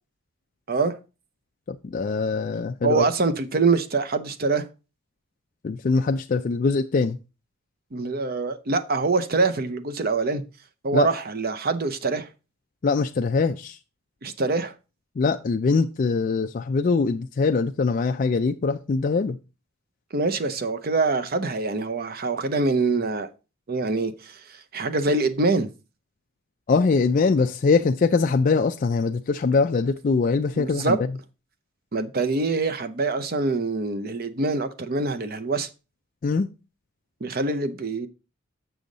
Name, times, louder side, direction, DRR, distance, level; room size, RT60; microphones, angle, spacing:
voice 1, 1.7-3.1 5.6-7.2 10.9-11.1 12.8-13.8 15.2-19.4 26.7-31.0 36.2-36.5, left 4 dB, 40° left, 0.3 m, -22 dB
voice 2, 2.8-4.7 7.9-10.4 10.8-12.3 14.2-14.7 20.1-23.3 23.7-25.7 30.6-31.0 31.9-35.7 37.2-38.1, right 3 dB, 45° right, 0.6 m, -24 dB
6.9 x 6.3 x 3.9 m
head